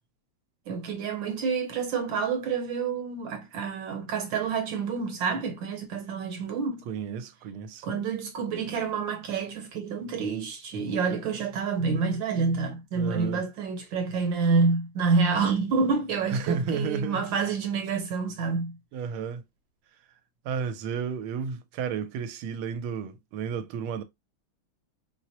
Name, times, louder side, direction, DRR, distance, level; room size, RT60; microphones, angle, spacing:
voice 1, 0.7-6.8 7.8-18.8, right 5 dB, 70° right, 1.5 m, -28 dB
voice 2, 6.9-7.8 12.9-13.4 16.3-17.2 18.9-19.4 20.4-24.0, right 6 dB, 85° right, 1.5 m, -32 dB
4.6 x 2.0 x 2.7 m
omnidirectional pair, 2.3 m